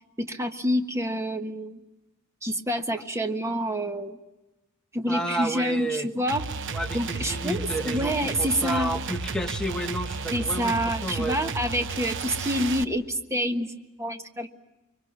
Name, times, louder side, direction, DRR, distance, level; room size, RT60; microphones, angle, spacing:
voice 1, 0.2-1.8 2.4-4.2 4.9-6.4 6.9-8.9 10.3-13.7 14.0-14.5, equal, 15° right, 6 dB, 1.4 m, -27 dB
voice 2, 5.1-6.1 6.7-11.4, right 1 dB, 5° left, 3 dB, 1.4 m, -31 dB
sound 1, 6.3-12.8, right 4 dB, 60° right, 0.9 m, -33 dB
24.5 x 24.5 x 9.5 m, 1.0 s
head